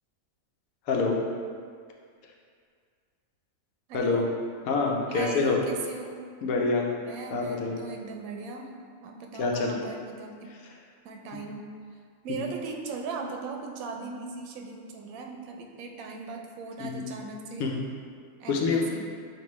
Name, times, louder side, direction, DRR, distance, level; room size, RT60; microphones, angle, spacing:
voice 1, 0.9-1.2 3.9-4.3 4.7-5.6 6.4-6.9 7.3-7.7 9.4-9.7 16.8-16.9 17.6-17.8 18.5-18.8, left 4 dB, 90° left, 0 dB, 1.1 m, -26 dB
voice 2, 3.9-4.3 5.1-6.1 7.0-8.7 9.0-10.5 11.0-11.6 12.2-17.7 18.4-19.1, right 4 dB, 85° right, 2 dB, 1.0 m, -38 dB
6.7 x 2.6 x 3.0 m, 2.1 s
omnidirectional pair, 1.4 m